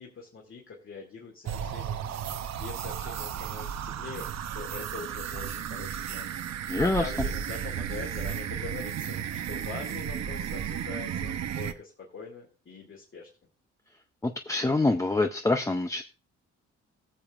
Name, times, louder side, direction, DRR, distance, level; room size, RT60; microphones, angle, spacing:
voice 1, 0.0-6.3 6.8-13.3, left 4 dB, 40° left, -1 dB, 2.2 m, -43 dB
sound 1, 1.5-11.7, right 8 dB, 60° right, 0.8 m, -34 dB
voice 2, 6.7-7.1 14.2-16.0, left 2 dB, 10° left, 7 dB, 0.5 m, -26 dB
19.5 x 7.0 x 2.4 m, 0.34 s
cardioid pair, 90°, 30 cm